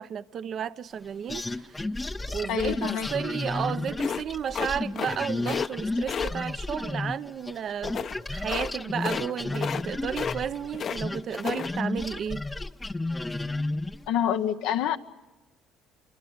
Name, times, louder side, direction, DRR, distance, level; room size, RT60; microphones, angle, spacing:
voice 1, 0.0-1.7 2.3-12.4, right 8 dB, 50° right, 0.8 m, -33 dB
sound 1, 1.3-7.6 7.8-14.1, left 2 dB, 15° left, 0.8 m, -32 dB
voice 2, 2.5-3.1 14.1-15.0, left 9 dB, 80° left, 0.9 m, -26 dB
sound 2, 4.0-5.2 5.4-5.7 6.1-6.3 7.8-8.2 8.5-8.7 9.0-9.3 9.5-9.9 10.1-11.0 11.3-11.7, left 7 dB, 50° left, 0.8 m, -32 dB
26.5 x 23.5 x 8.1 m
supercardioid pair, 80°, 0 cm